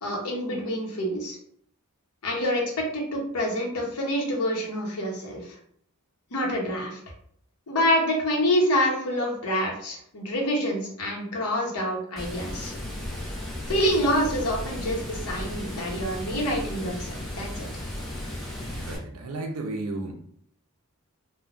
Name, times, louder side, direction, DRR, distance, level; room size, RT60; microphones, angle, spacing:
voice 1, 0.0-1.4 2.2-2.6 2.9-5.5 6.3-7.0 7.7-12.7 13.7-17.7, equal, 90° left, -1 dB, 0.8 m, -27 dB
Water, 12.2-19.0, left 1 dB, ahead, 0.6 m, -35 dB
voice 2, 18.7-20.1, right 2 dB, 80° right, 3 dB, 0.5 m, -33 dB
3.2 x 2.1 x 2.4 m, 0.64 s
head